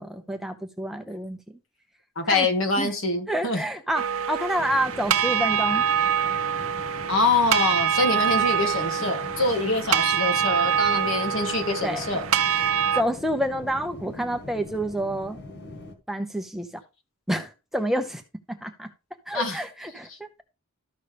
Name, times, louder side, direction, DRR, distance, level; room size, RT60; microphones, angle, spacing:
voice 1, 0.0-1.4 2.3-2.5 2.8-2.9 3.3-5.8 11.8-12.0 12.4-15.4 16.1-16.8 17.3-18.2 18.5-18.9 19.3-20.4, equal, ahead, 0.6 m, -28 dB
voice 2, 2.1-3.6 7.1-12.2 19.3-19.6, left 3 dB, 70° left, 1.6 m, -25 dB
sound 1, 3.9-13.0, right 8 dB, 85° right, 0.6 m, -25 dB
sound 2, 4.6-15.9, left 2 dB, 50° left, 1.2 m, -42 dB
13.0 x 5.4 x 3.3 m
head